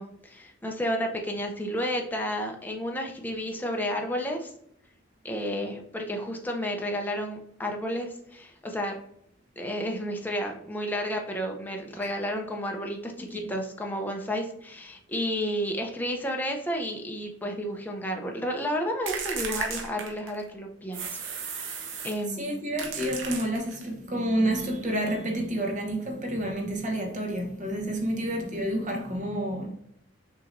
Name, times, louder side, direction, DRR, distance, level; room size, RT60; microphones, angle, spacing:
voice 1, 0.0-4.5 5.2-9.0 9.6-22.5, equal, 10° left, 0.5 m, -32 dB
voice 2, 13.2-13.5 22.3-29.7, right 1 dB, 40° right, 1.0 m, -29 dB
sound 1, 19.1-20.5 20.9-22.3 22.8-23.9, right 6 dB, 70° right, 0.8 m, -35 dB
6.2 x 2.9 x 2.5 m
head